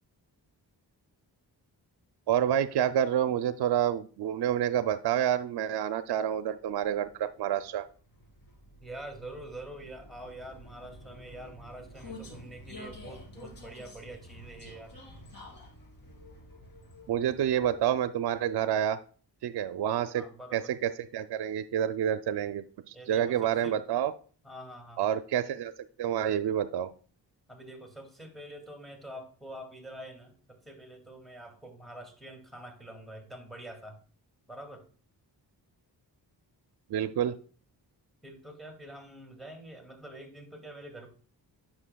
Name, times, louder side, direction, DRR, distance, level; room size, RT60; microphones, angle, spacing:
voice 1, 2.3-7.9 17.1-19.0 19.4-20.2 20.5-24.1 25.0-25.7 26.0-26.9 36.9-37.4, right 10 dB, 65° right, 11 dB, 0.5 m, -28 dB
Vehicle, 6.3-18.2, left 1 dB, 55° left, 2.8 m, -50 dB
voice 2, 8.8-14.9 20.1-20.7 22.9-23.8 24.4-25.0 27.5-34.0 34.5-34.9 38.2-41.1, right 1 dB, ahead, 3 dB, 2.2 m, -46 dB
9.7 x 6.1 x 2.2 m, 0.40 s
cardioid pair, 60°, 42 cm